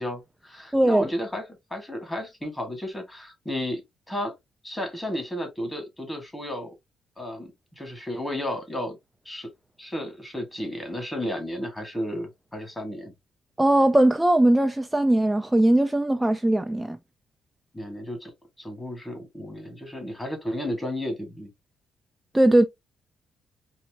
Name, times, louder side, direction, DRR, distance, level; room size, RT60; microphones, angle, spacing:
voice 1, 0.0-1.4 1.7-3.8 4.1-4.3 4.6-6.7 7.2-9.0 9.2-9.5 9.8-13.1 17.7-18.3 18.6-21.5, left 1 dB, 10° left, 1.7 m, -33 dB
voice 2, 0.7-1.1 13.6-17.0 22.3-22.7, right 1 dB, 10° right, 0.3 m, -20 dB
4.2 x 2.7 x 2.7 m
cardioid pair, 90°, 0 cm